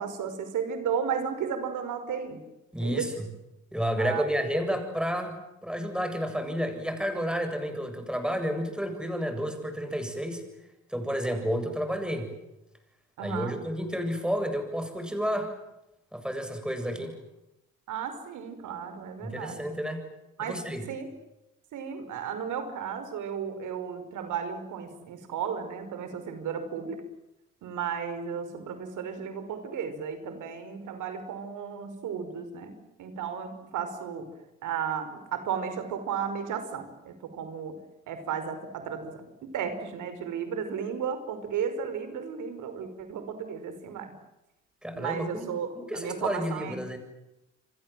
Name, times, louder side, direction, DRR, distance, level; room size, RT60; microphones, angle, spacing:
voice 1, 0.0-2.4 2.8-3.1 4.0-4.3 13.2-13.7 17.9-19.6 20.4-20.6 20.9-21.1 21.7-27.1 27.6-32.7 33.0-34.3 34.6-37.8 38.1-44.1 44.9-46.8, right 7 dB, 80° right, 9 dB, 5.4 m, -34 dB
voice 2, 2.7-3.1 3.7-5.3 5.6-10.4 10.9-12.3 13.2-15.5 16.1-17.2 19.2-20.0 20.4-20.8 44.8-45.5 45.7-47.0, equal, 5° right, 6 dB, 7.7 m, -31 dB
29.5 x 24.5 x 7.7 m, 0.91 s
cardioid pair, 90°, 30 cm